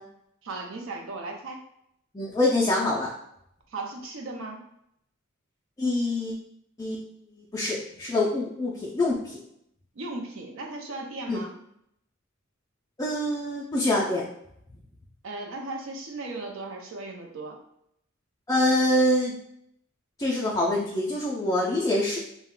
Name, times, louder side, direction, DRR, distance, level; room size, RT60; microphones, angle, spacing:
voice 1, 0.4-1.6 3.7-4.7 10.0-11.5 15.2-17.6, right 2 dB, 65° right, 2 dB, 0.5 m, -36 dB
voice 2, 2.1-3.1 5.8-6.3 6.8-7.0 7.5-9.4 11.3-11.4 13.0-14.2 18.5-19.4 20.2-22.2, left 1 dB, 15° left, -6 dB, 0.4 m, -25 dB
2.3 x 2.2 x 3.6 m, 0.75 s
head